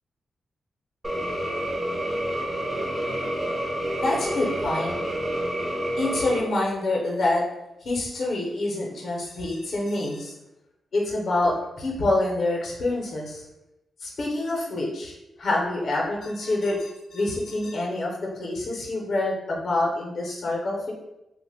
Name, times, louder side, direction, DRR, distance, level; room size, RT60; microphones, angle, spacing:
sound 1, 1.0-6.4, right 1 dB, 15° right, 0.3 m, -28 dB
voice 1, 3.9-5.0 6.0-7.4 7.8-10.3 10.9-13.4 14.0-20.9, left 2 dB, 45° left, -2 dB, 0.6 m, -26 dB
2.8 x 2.1 x 3.3 m, 0.91 s
wide cardioid pair, 175°, 0 cm